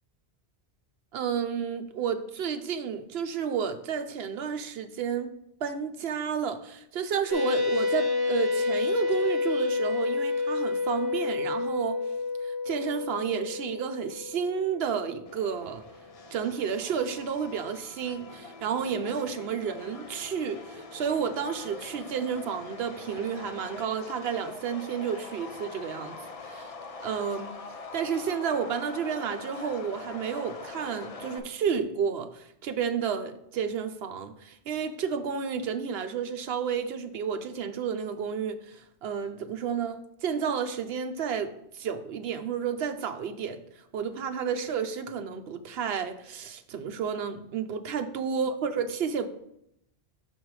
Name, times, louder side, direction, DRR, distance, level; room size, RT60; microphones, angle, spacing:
voice 1, 1.1-5.3 5.6-12.0 12.4-15.8 16.3-26.2 26.4-26.7 27.0-27.6 27.9-43.6 43.9-49.3, right 7 dB, 70° right, 0.9 m, -31 dB
sound 1, 7.3-15.4, left 4 dB, 20° left, 1.1 m, -29 dB
Subway metro underground, 15.3-31.4, left 3 dB, 40° left, 0.6 m, -43 dB
5.9 x 5.4 x 4.7 m
omnidirectional pair, 1.1 m